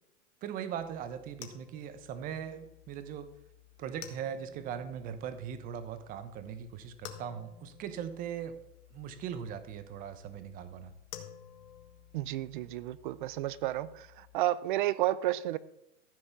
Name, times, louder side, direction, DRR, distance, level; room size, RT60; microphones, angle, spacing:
voice 1, 0.4-3.3 3.8-8.5 8.9-10.9, right 8 dB, 25° right, 11 dB, 1.0 m, -40 dB
sound 1, 0.8-14.4, left 9 dB, 85° left, 2.1 m, -53 dB
voice 2, 12.1-15.6, right 15 dB, 45° right, 18 dB, 0.6 m, -31 dB
14.5 x 6.3 x 7.0 m, 0.84 s
supercardioid pair, 155°, 37 cm